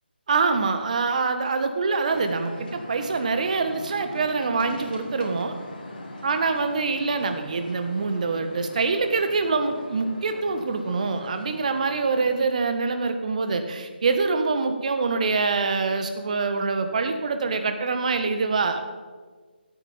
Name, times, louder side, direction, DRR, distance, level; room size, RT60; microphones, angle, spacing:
voice 1, 0.3-5.6 6.2-18.8, right 4 dB, 40° right, 8 dB, 1.4 m, -25 dB
sound 1, 2.1-12.3, left 2 dB, 50° left, 3.2 m, -41 dB
16.5 x 9.0 x 5.1 m, 1.4 s
figure-of-eight pair, 150°, 6 cm